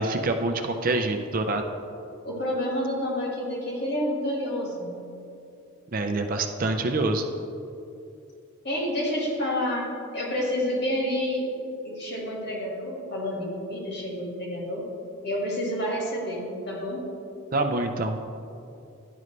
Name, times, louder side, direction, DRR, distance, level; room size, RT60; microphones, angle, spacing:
voice 1, 0.0-1.6 5.9-7.3 17.5-18.2, right 2 dB, 40° right, 5 dB, 0.4 m, -26 dB
voice 2, 2.2-5.0 8.6-11.5 11.8-14.9 15.2-17.0, equal, 50° left, -2 dB, 1.8 m, -29 dB
11.0 x 5.3 x 3.2 m, 2.6 s
head